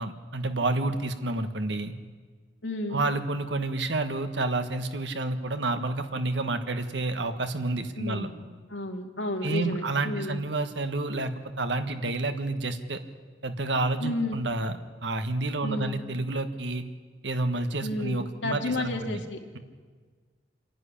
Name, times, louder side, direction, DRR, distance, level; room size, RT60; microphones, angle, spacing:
voice 1, 0.0-1.9 2.9-8.3 9.4-11.3 11.6-13.0 13.4-14.8 15.0-16.8 17.2-19.2, right 2 dB, 75° right, 8 dB, 1.5 m, -29 dB
voice 2, 2.6-3.0 8.0-8.4 8.7-10.4 14.0-14.4 15.6-16.0 17.8-19.4, left 1 dB, 90° left, 3 dB, 2.5 m, -32 dB
27.5 x 11.0 x 10.0 m, 1.5 s
head